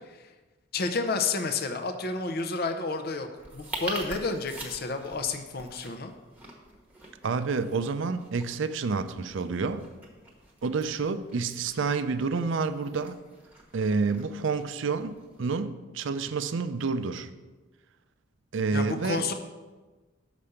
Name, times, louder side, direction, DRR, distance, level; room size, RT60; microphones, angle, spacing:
voice 1, 0.7-3.3 3.5-6.1 18.7-19.3, left 4 dB, 50° left, 6 dB, 0.6 m, -30 dB
sound 1, 3.4-15.5, right 1 dB, 10° right, 1.1 m, -45 dB
voice 2, 7.2-9.8 10.6-13.2 13.7-15.1 15.4-17.3 18.5-19.3, right 4 dB, 65° right, 11 dB, 0.5 m, -29 dB
6.7 x 5.1 x 6.9 m, 1.2 s
head